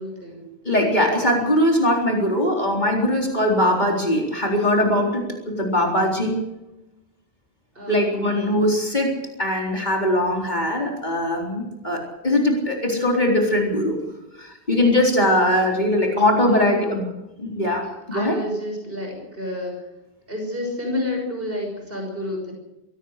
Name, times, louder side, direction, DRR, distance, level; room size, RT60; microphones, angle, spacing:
voice 1, 0.0-0.5 7.7-8.7 16.5-17.1 17.8-19.9 20.3-22.5, left 1 dB, 60° right, 1 dB, 6.6 m, -30 dB
voice 2, 0.6-6.4 7.9-14.0 14.4-17.0 17.4-18.4, left 1 dB, 45° left, 0 dB, 4.2 m, -21 dB
23.0 x 17.5 x 6.6 m, 0.98 s
omnidirectional pair, 1.1 m